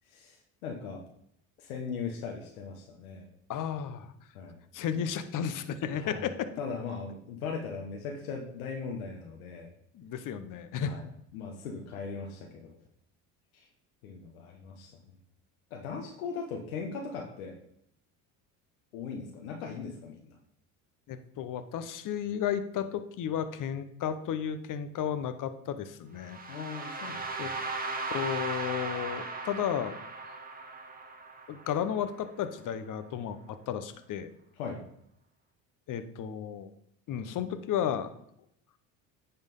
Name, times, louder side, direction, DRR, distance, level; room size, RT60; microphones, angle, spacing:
voice 1, 0.1-1.0 1.6-3.3 4.3-4.6 5.9-6.3 6.6-9.7 10.7-11.0 11.3-12.8 13.5-13.7 14.0-15.2 15.7-17.5 18.9-20.4 26.5-27.5 34.6-34.8, left 5 dB, 90° left, 1 dB, 1.2 m, -39 dB
voice 2, 3.5-4.1 4.7-6.5 9.9-11.0 21.1-26.4 27.4-27.5 28.1-30.0 31.5-34.3 35.9-36.7 37.1-38.1, left 9 dB, 50° left, 11 dB, 1.0 m, -33 dB
sound 1, 26.2-32.2, right 3 dB, 20° right, 1.7 m, -37 dB
9.3 x 4.4 x 5.3 m, 0.74 s
supercardioid pair, 80°, 41 cm